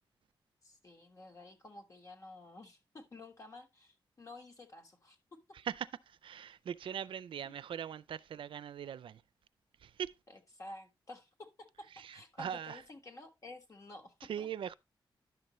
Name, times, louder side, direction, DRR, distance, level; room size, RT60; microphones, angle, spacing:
voice 1, 0.6-5.2 7.4-7.5 10.3-14.5, left 2 dB, 40° left, 1.4 m, -52 dB
voice 2, 5.6-9.2 9.8-10.1 12.0-12.8 14.3-14.7, right 9 dB, 80° right, 0.4 m, -41 dB
10.5 x 6.6 x 3.0 m
wide cardioid pair, 165°, 9 cm